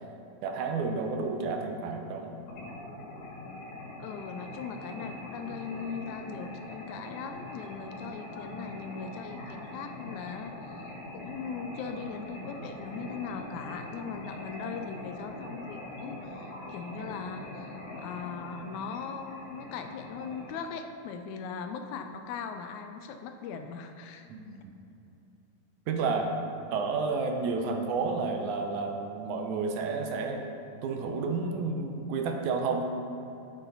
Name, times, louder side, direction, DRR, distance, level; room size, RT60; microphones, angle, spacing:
voice 1, 0.4-2.3 24.3-24.7 25.9-26.3 26.7-30.4 30.8-32.9, right 4 dB, 80° right, 3 dB, 2.1 m, -31 dB
sound 1, 2.5-20.6, left 1 dB, 60° left, 2.4 m, -42 dB
voice 2, 4.0-24.3, left 5 dB, 80° left, 7 dB, 1.9 m, -39 dB
8.3 x 8.2 x 4.0 m, 2.9 s
omnidirectional pair, 3.5 m